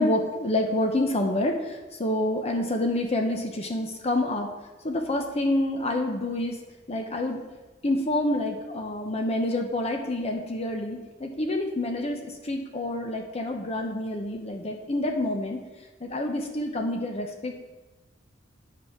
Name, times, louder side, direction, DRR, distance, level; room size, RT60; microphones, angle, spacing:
voice 1, 0.0-4.5 4.8-6.6 6.9-7.4 7.8-15.6 16.0-17.6, left 1 dB, 35° left, 4 dB, 0.8 m, -27 dB
8.9 x 5.6 x 5.8 m, 1.2 s
head